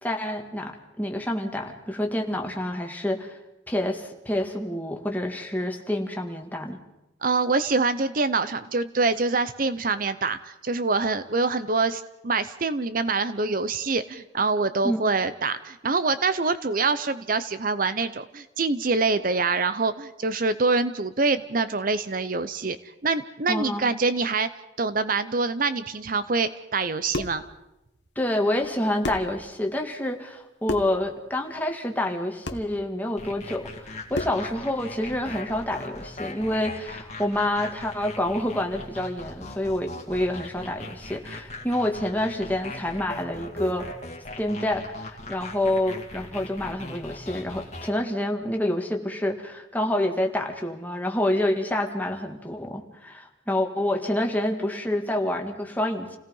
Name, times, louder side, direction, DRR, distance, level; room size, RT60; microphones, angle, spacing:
voice 1, 0.0-3.4 3.7-6.8 14.8-15.0 23.5-23.8 28.2-43.9 44.4-56.2, left 1 dB, 10° left, 2 dB, 2.1 m, -28 dB
voice 2, 7.2-22.8 23.0-24.5 24.8-27.5, right 3 dB, 45° right, 13 dB, 0.7 m, -25 dB
sound 1, 26.8-27.5 28.6-28.7 29.0-29.4 30.6-31.0 32.4-32.7 34.1-34.5, left 1 dB, 65° left, 1.6 m, -31 dB
sound 2, 33.2-47.9, left 2 dB, 35° left, 2.2 m, -40 dB
29.0 x 17.5 x 5.5 m, 0.93 s
head